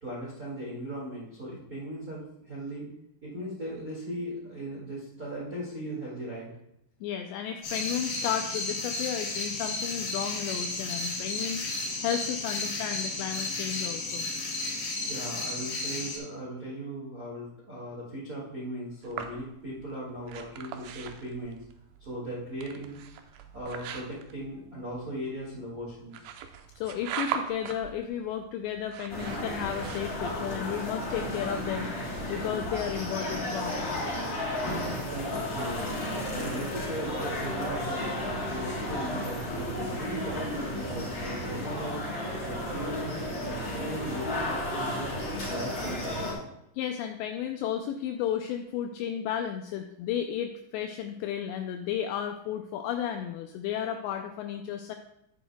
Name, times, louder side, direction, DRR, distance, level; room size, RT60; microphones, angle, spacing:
voice 1, 0.0-2.9 3.2-6.5 15.1-21.6 22.0-23.0 23.2-26.1 34.9-35.9 36.3-42.0 42.5-45.1 45.5-46.4, right 1 dB, 70° right, -6 dB, 0.8 m, -38 dB
voice 2, 7.0-14.3 26.8-34.1 46.8-54.9, left 9 dB, 85° left, 5 dB, 2.5 m, -33 dB
sound 1, 7.6-16.2, left 3 dB, 65° left, 4.3 m, -33 dB
sound 2, 19.0-30.5, right 8 dB, 90° right, 2.3 m, -41 dB
sound 3, 29.1-46.3, left 1 dB, 30° left, 4.3 m, -33 dB
11.0 x 10.5 x 2.2 m, 0.82 s
omnidirectional pair, 5.4 m